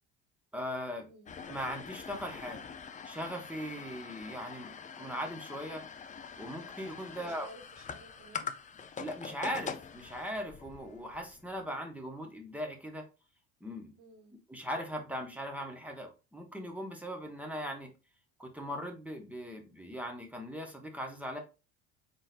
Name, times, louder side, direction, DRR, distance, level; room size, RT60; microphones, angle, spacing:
voice 1, 0.5-1.1 1.5-2.6 3.0-5.8 6.4-7.5 9.0-13.0 13.6-13.9 14.5-17.9 18.4-21.4, equal, 5° right, 1.2 m, -39 dB
sound 1, 1.3-11.6, left 6 dB, 20° left, 0.5 m, -44 dB
voice 2, 7.2-8.5 14.0-14.3, right 1 dB, 60° right, 1.4 m, -54 dB
4.0 x 3.7 x 2.5 m
hypercardioid pair, 70°, 35 cm